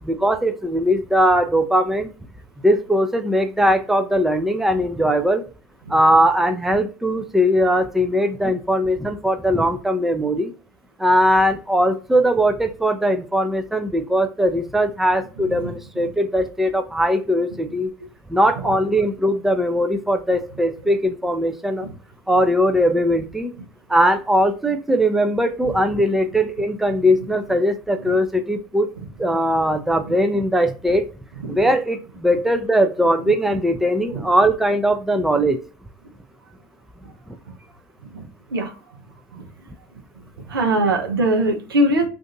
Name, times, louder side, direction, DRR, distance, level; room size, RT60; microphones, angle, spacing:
voice 1, 0.0-2.1 2.6-5.4 5.9-10.5 11.0-17.9 18.3-21.9 22.3-23.5 23.9-28.9 29.2-31.1 31.5-35.6 37.3-37.4, equal, ahead, 7 dB, 0.4 m, -20 dB
voice 2, 40.5-42.1, right 1 dB, 85° right, 4 dB, 0.6 m, -20 dB
2.5 x 2.5 x 3.8 m, 0.34 s
hypercardioid pair, 75°, 12 cm